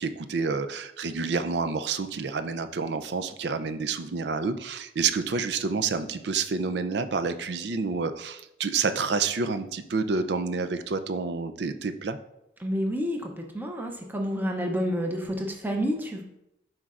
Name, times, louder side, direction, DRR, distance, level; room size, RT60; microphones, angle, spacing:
voice 1, 0.0-12.2, right 4 dB, 65° right, 10 dB, 0.5 m, -29 dB
voice 2, 12.6-16.2, equal, 10° right, 2 dB, 0.7 m, -29 dB
11.5 x 4.6 x 2.5 m, 0.84 s
head